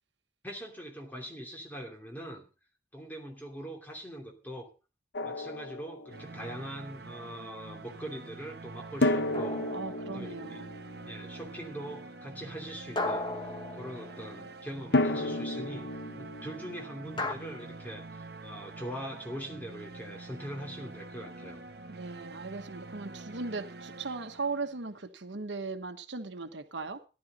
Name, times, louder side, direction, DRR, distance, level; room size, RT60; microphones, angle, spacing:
voice 1, 0.4-2.4 2.9-4.7 5.2-9.7 10.1-10.6 11.0-13.3 13.7-21.6, equal, 10° left, 2.8 m, -42 dB
Drum, 5.1-6.5 9.0-12.0 14.9-17.8, left 2 dB, 70° left, 0.9 m, -33 dB
sound 1, 6.1-25.0, right 3 dB, 60° right, 1.0 m, -46 dB
sound 2, 9.3-10.5 13.0-14.6 17.2-17.3, left 2 dB, 25° left, 1.2 m, -36 dB
voice 2, 9.7-10.7 21.9-27.0, right 3 dB, 85° right, 1.2 m, -38 dB
15.0 x 11.5 x 4.1 m
head